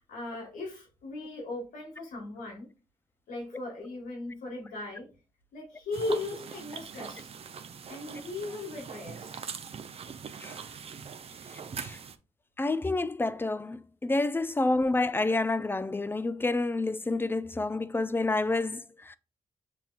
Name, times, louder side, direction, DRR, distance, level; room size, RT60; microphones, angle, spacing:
voice 1, 0.0-2.7 3.3-5.1 5.5-7.3 7.9-9.6 11.2-11.6, left 2 dB, 80° left, 1.8 m, -38 dB
sound 1, 5.9-12.2, right 6 dB, 45° right, 0.5 m, -42 dB
voice 2, 12.6-19.2, left 2 dB, 15° left, 0.4 m, -29 dB
7.0 x 2.8 x 2.4 m
supercardioid pair, 55°, 14 cm